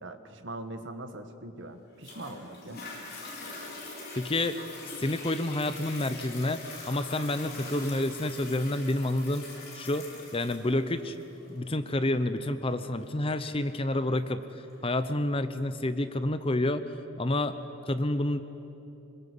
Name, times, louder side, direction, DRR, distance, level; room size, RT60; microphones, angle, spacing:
voice 1, 0.0-2.9, right 2 dB, 55° right, 7 dB, 1.7 m, -41 dB
Toilet flush, 2.0-15.0 15.6-15.7, left 3 dB, 45° left, 5.3 m, -44 dB
voice 2, 4.2-4.6 5.0-11.2 11.5-14.4 14.8-16.8 17.2-17.6 17.9-18.4, left 1 dB, 25° left, 11 dB, 0.7 m, -29 dB
25.5 x 21.5 x 8.5 m, 2.9 s
head